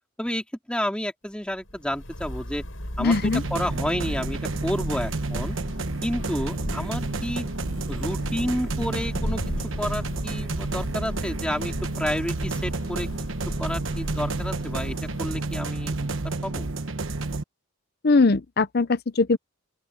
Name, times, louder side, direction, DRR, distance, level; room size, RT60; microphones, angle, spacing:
voice 1, 0.2-2.6 3.0-5.6 6.0-7.4 7.9-13.1 13.6-16.7, equal, 5° left, 2.6 m, -30 dB
Thunder / Rain, 1.5-15.9, equal, 70° left, 7.6 m, -36 dB
voice 2, 3.0-3.4 18.0-19.4, left 3 dB, 50° left, 0.7 m, -21 dB
sound 1, 3.1-17.4, right 3 dB, 65° right, 1.2 m, -30 dB
open air
head